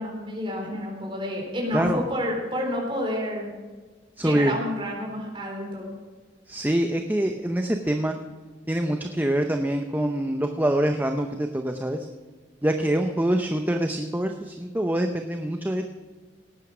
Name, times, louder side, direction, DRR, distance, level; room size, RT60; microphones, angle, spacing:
voice 1, 0.0-3.5 4.2-5.9, equal, 25° right, -1 dB, 4.1 m, -29 dB
voice 2, 4.2-4.5 6.5-8.2 8.7-12.1 12.6-15.9, right 1 dB, 10° right, 5 dB, 0.6 m, -25 dB
18.0 x 9.2 x 6.1 m, 1.4 s
head